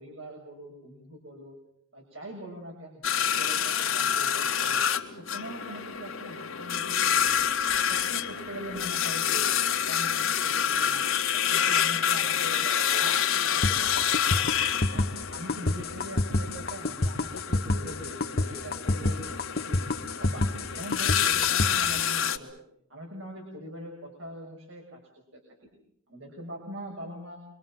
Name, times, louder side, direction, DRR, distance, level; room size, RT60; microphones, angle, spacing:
voice 1, 0.0-1.5 1.9-4.8 5.1-7.5 7.9-9.5 9.9-11.1 11.3-14.6 14.9-19.8 20.2-20.4 20.7-22.6 22.9-25.0 25.3-25.7 26.1-27.4, equal, 65° right, 1 dB, 6.3 m, -42 dB
sound 1, 3.0-22.4, left 9 dB, 70° left, 2.0 m, -28 dB
sound 2, 13.6-21.7, left 2 dB, 50° left, 1.5 m, -27 dB
26.0 x 24.5 x 7.6 m, 0.71 s
head